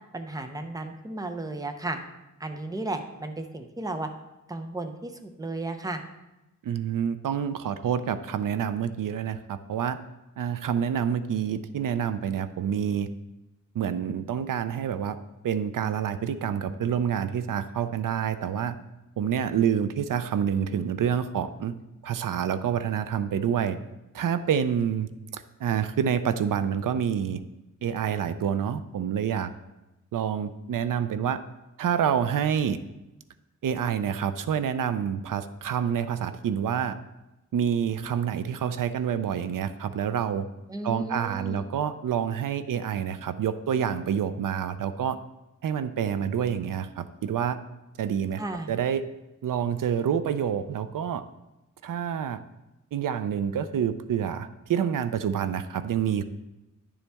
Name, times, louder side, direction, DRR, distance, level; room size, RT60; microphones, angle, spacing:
voice 1, 0.1-2.0 2.4-4.1 4.5-6.0 40.7-41.7 48.4-48.7, right 2 dB, 10° right, 7 dB, 0.6 m, -34 dB
voice 2, 6.6-10.0 10.4-13.1 13.7-15.2 15.4-18.8 19.2-21.7 22.0-23.8 24.1-27.4 27.8-29.5 30.1-31.4 31.8-32.8 33.6-37.0 37.5-40.5 40.8-45.2 45.6-47.6 48.0-48.4 48.7-49.0 49.4-51.2 51.8-52.4 52.9-56.2, right 8 dB, 85° right, 12 dB, 0.5 m, -27 dB
10.5 x 7.0 x 3.5 m, 0.98 s
wide cardioid pair, 165°, 32 cm